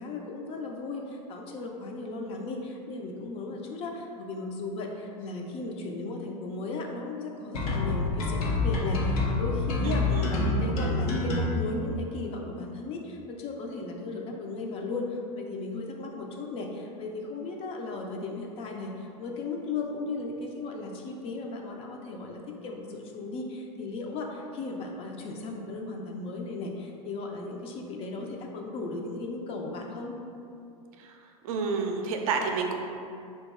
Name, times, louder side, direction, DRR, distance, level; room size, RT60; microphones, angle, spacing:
voice 1, 0.0-30.2, left 3 dB, 30° left, 1 dB, 0.4 m, -36 dB
sound 1, 7.5-11.5, left 2 dB, 75° left, 0.7 m, -27 dB
voice 2, 9.8-10.3 10.8-10.9 31.0-31.2 31.4-32.8, right 4 dB, 70° right, 3 dB, 0.4 m, -30 dB
2.7 x 2.3 x 4.0 m, 2.5 s
hypercardioid pair, 120°, 19 cm